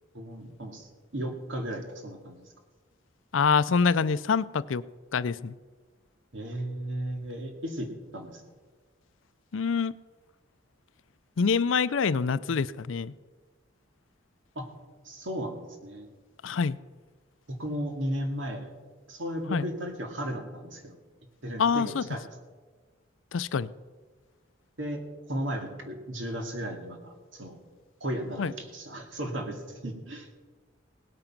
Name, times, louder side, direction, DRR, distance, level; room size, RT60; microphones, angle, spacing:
voice 1, 0.1-2.4 6.3-8.4 14.6-14.7 15.0-16.1 17.5-18.7 19.1-20.9 21.4-22.3 24.8-25.0 25.3-27.6 28.0-30.3, equal, 75° right, 4 dB, 2.2 m, -35 dB
voice 2, 3.3-4.8 5.1-5.6 9.5-9.9 11.4-13.1 16.4-16.8 19.5-19.7 21.6-22.0 23.3-23.7 28.4-28.5, left 5 dB, 80° left, 17 dB, 0.5 m, -25 dB
18.0 x 8.9 x 5.9 m, 1.4 s
head